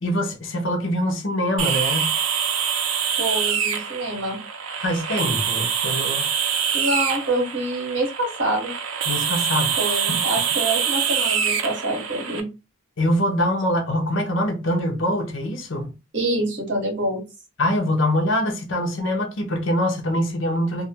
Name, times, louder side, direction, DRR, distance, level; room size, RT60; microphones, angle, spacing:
voice 1, 0.0-2.2 4.8-6.3 9.1-9.8 13.0-15.9 17.6-20.9, left 1 dB, 65° left, 0.7 m, -24 dB
sound 1, 1.6-12.4, right 7 dB, 80° right, 0.4 m, -25 dB
voice 2, 3.2-4.4 6.7-8.7 9.8-12.5 16.1-17.2, right 1 dB, 60° right, 1.0 m, -26 dB
2.4 x 2.1 x 2.7 m
head